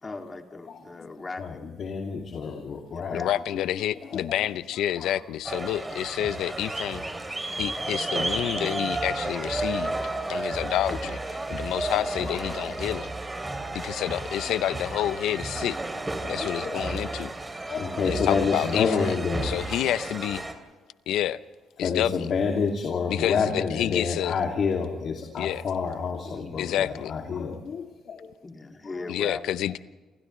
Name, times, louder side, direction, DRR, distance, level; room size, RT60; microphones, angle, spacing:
voice 1, 0.0-1.7 2.9-3.4 14.4-14.5 17.8-18.4 26.3-26.8 28.4-29.8, left 3 dB, 25° left, 2.7 m, -40 dB
voice 2, 0.7-3.6 3.9-4.5 5.0-5.2 5.7-5.9 7.4-7.9 9.8-10.5 10.9-11.0 11.9-12.8 14.3-14.4 14.9-15.0 16.2-17.0 17.7-19.5 21.8-28.3 28.8-29.1, left 5 dB, 60° left, 2.6 m, -30 dB
voice 3, 3.1-7.1 7.6-9.9 10.3-11.2 11.5-13.1 13.7-15.8 16.3-17.3 18.0-18.9 19.4-20.4 21.1-21.4 21.8-22.1 23.1-24.3 25.4-25.6 26.6-27.1 29.1-29.8, left 12 dB, 85° left, 0.8 m, -28 dB
sound 1, 5.4-20.5, right 2 dB, 20° right, 3.3 m, -32 dB
29.5 x 27.5 x 3.3 m
cardioid pair, 90°, 0 cm